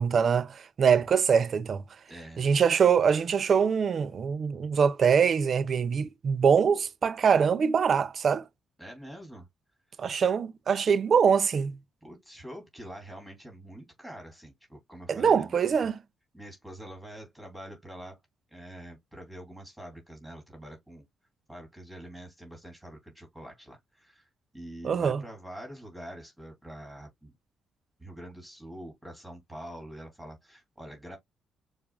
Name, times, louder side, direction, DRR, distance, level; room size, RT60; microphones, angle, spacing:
voice 1, 0.0-1.8 2.4-8.4 10.0-11.8 15.1-16.0 24.8-25.2, right 6 dB, 50° right, 0.6 m, -23 dB
voice 2, 2.1-2.5 8.8-9.5 12.0-15.9 16.3-18.2 18.5-21.0 21.5-24.3 24.5-27.3 28.0-31.2, right 1 dB, 5° right, 2.9 m, -45 dB
6.9 x 2.6 x 2.4 m
cardioid pair, 90°, 0 cm